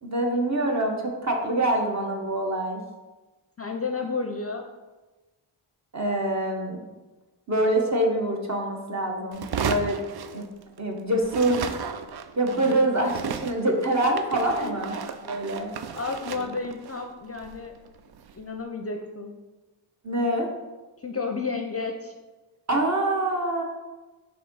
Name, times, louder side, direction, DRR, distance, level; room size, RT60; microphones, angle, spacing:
voice 1, 0.0-2.8 5.9-6.8 7.5-10.0 10.3-10.4 10.8-11.6 12.4-14.9 15.2-15.7 20.0-20.5 22.7-23.6, right 1 dB, 35° right, 1 dB, 1.2 m, -25 dB
voice 2, 3.6-4.6 12.6-12.9 14.6-14.8 15.9-17.7 18.3-19.3 21.0-22.1 23.3-23.4, left 4 dB, 30° left, 3 dB, 0.6 m, -32 dB
sound 1, 9.3-10.9 11.2-18.4, right 6 dB, 50° right, 0.5 m, -35 dB
4.8 x 3.8 x 5.5 m, 1.2 s
cardioid pair, 70°, 50 cm